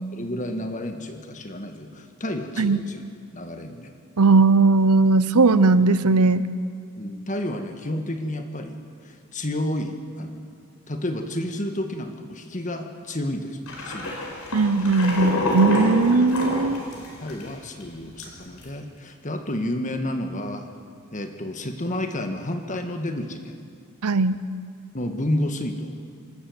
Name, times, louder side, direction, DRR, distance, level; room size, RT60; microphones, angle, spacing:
voice 1, 0.1-3.1 3.3-3.9 7.0-8.8 9.0-10.4 10.9-14.3 16.6-16.9 17.2-20.7 21.1-23.5 24.9-26.0, left 1 dB, 35° left, 6 dB, 1.7 m, -30 dB
voice 2, 4.2-6.4 14.5-16.8 24.0-24.4, right 3 dB, 90° right, 15 dB, 0.8 m, -18 dB
sound 1, 13.7-17.5 17.8-17.9 18.2-18.6, left 1 dB, 80° left, 5.2 m, -27 dB
26.5 x 12.5 x 8.0 m, 2.3 s
head